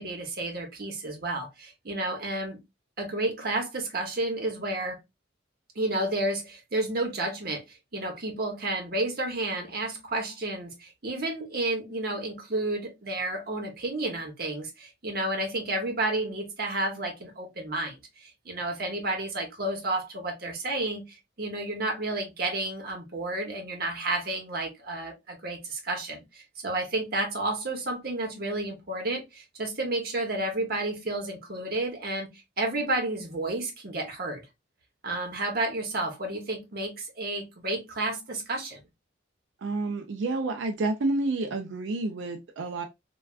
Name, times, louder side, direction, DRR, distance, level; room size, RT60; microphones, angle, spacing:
voice 1, 0.0-2.6 3.0-5.0 5.8-32.3 32.6-34.4 35.0-38.8, right 2 dB, 50° right, 0.9 m, -31 dB
voice 2, 39.6-42.9, right 2 dB, 70° right, 0.4 m, -29 dB
3.3 x 2.3 x 2.3 m
head